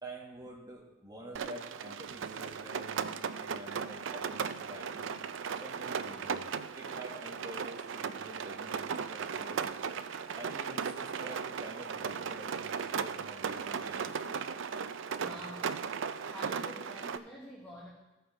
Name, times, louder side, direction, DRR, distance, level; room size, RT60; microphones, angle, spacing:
voice 1, 0.0-5.1 5.6-9.9 10.3-14.4 17.0-17.2, right 1 dB, 20° right, -2 dB, 1.7 m, -48 dB
Rain, 1.4-17.2, right 6 dB, 65° right, 0.4 m, -37 dB
voice 2, 15.1-15.8 16.2-17.9, equal, 10° left, -4 dB, 1.2 m, -47 dB
15.5 x 5.7 x 4.2 m, 1.1 s
head